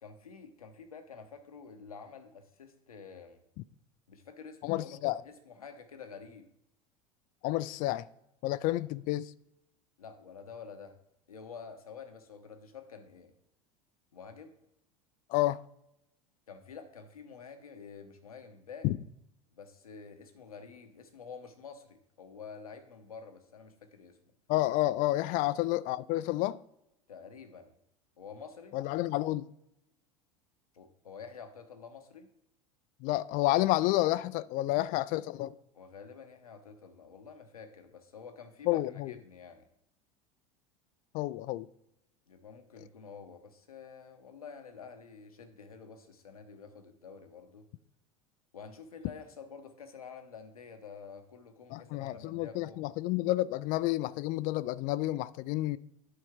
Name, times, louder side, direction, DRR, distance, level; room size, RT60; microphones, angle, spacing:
voice 1, 0.0-3.4 4.1-6.5 8.7-8.8 10.0-11.0 11.3-13.3 14.1-14.5 16.5-18.9 19.5-24.2 27.1-27.7 28.2-28.8 30.7-32.3 35.7-39.7 42.3-47.7 48.5-52.9, left 5 dB, 90° left, 1.0 m, -49 dB
voice 2, 4.6-5.2 7.4-8.1 8.4-9.3 15.3-15.6 18.8-19.0 24.5-26.6 28.7-29.5 33.0-35.6 38.7-39.1 41.1-41.7 51.7-55.8, left 17 dB, 50° left, 0.4 m, -30 dB
10.0 x 5.4 x 3.6 m
hypercardioid pair, 80°, 18 cm